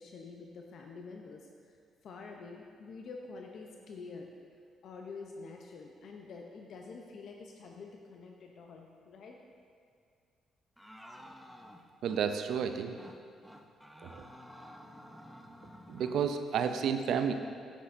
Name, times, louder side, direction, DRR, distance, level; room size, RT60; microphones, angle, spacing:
voice 1, 0.0-1.5 2.0-4.3 4.8-9.4, left 4 dB, 65° left, 2 dB, 0.6 m, -47 dB
sound 1, 10.8-12.2 12.5-12.7 13.0-13.2 13.4-16.2, equal, ahead, 0.6 m, -51 dB
voice 2, 12.0-13.0 14.0-14.2 15.9-17.3, right 7 dB, 75° right, 8 dB, 0.4 m, -31 dB
9.9 x 8.0 x 2.6 m, 2.2 s
cardioid pair, 90°, 0 cm